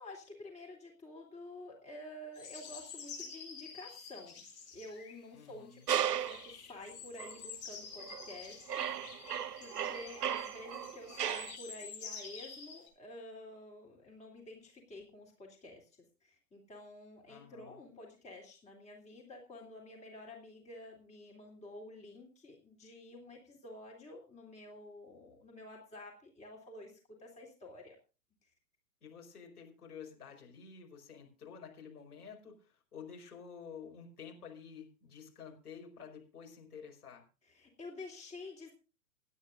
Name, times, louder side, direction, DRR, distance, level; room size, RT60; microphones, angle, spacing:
voice 1, 0.0-4.4 4.7-15.9 16.2-26.9 27.2-28.0 37.4-38.7, left 1 dB, 15° left, 0 dB, 3.0 m, -50 dB
sound 1, 2.4-5.2 5.8-12.9, left 6 dB, 30° left, 6.6 m, -49 dB
voice 2, 5.3-5.9 17.3-17.8 29.0-37.2, left 6 dB, 65° left, 2 dB, 5.3 m, -51 dB
sound 2, 5.9-6.5 7.2-7.3 8.0-8.4 8.7-11.6, right 9 dB, 75° right, 0.6 m, -36 dB
27.5 x 9.7 x 2.6 m, 0.32 s
figure-of-eight pair, 105°, 48 cm